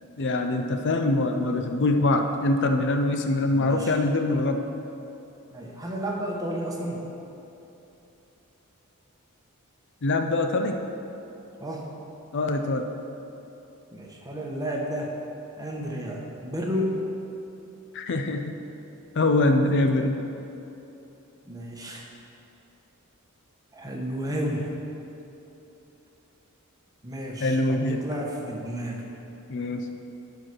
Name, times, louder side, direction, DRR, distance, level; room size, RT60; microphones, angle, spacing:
voice 1, 0.2-4.6 10.0-10.8 12.3-12.9 17.9-18.6 19.2-20.2 27.4-28.0 29.5-29.9, left 2 dB, 55° left, 6 dB, 0.5 m, -24 dB
voice 2, 3.5-3.9 5.5-7.0 11.6-11.8 13.9-15.1 15.6-17.0 21.5-22.1 23.7-24.7 27.0-29.0, equal, 15° right, -1 dB, 1.0 m, -32 dB
10.0 x 4.7 x 6.1 m, 2.9 s
head